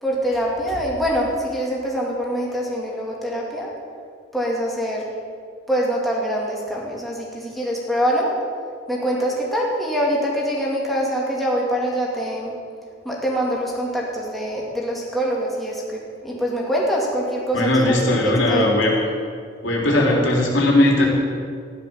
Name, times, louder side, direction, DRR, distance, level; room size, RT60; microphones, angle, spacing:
voice 1, 0.0-3.7 4.3-5.1 5.7-8.3 8.9-12.6 13.0-18.7, equal, ahead, -4 dB, 2.3 m, -24 dB
voice 2, 17.5-18.9 19.6-21.1, left 1 dB, 80° left, -2 dB, 3.5 m, -18 dB
14.5 x 11.0 x 7.1 m, 2.2 s
head